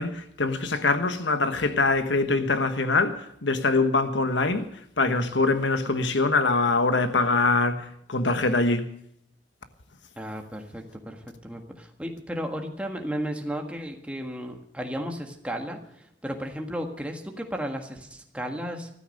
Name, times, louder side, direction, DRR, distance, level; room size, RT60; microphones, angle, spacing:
voice 1, 0.0-4.7 5.0-8.8, left 3 dB, 85° left, 1.3 m, -23 dB
voice 2, 10.2-18.9, equal, 5° right, 1.6 m, -34 dB
14.5 x 13.0 x 6.5 m
head